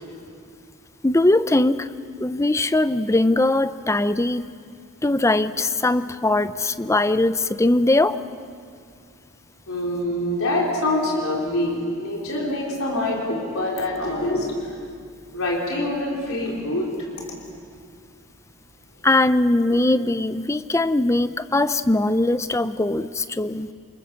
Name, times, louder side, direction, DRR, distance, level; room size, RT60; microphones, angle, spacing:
voice 1, 1.0-1.9 2.2-4.5 5.0-8.2 19.0-23.7, left 2 dB, 15° left, 13 dB, 0.5 m, -20 dB
voice 2, 9.7-14.8 15.3-16.9, left 1 dB, 70° left, -2 dB, 4.3 m, -25 dB
28.5 x 21.5 x 6.9 m, 2.2 s
head